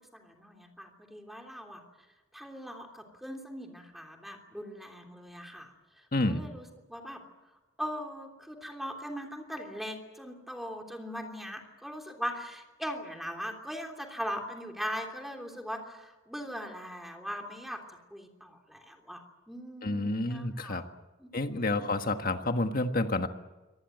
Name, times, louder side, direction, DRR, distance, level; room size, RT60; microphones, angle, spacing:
voice 1, 0.1-1.8 2.3-7.2 7.8-17.8 18.1-20.8 21.2-21.8, equal, ahead, 3 dB, 3.2 m, -40 dB
voice 2, 6.1-6.4 19.8-20.8 21.3-23.3, left 2 dB, 45° left, 7 dB, 1.6 m, -29 dB
24.5 x 19.0 x 9.1 m, 1.1 s
head